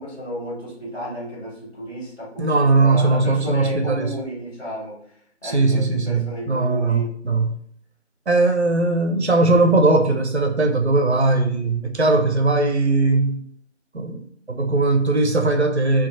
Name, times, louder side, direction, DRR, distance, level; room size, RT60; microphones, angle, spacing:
voice 1, 0.0-5.2 5.4-7.1, equal, 70° left, -7 dB, 1.5 m, -32 dB
voice 2, 2.4-4.1 5.4-7.6 8.3-13.4 13.9-14.2 14.5-16.1, right 3 dB, 65° right, 4 dB, 0.5 m, -19 dB
2.5 x 2.5 x 2.4 m, 0.66 s
figure-of-eight pair, 175°, 36 cm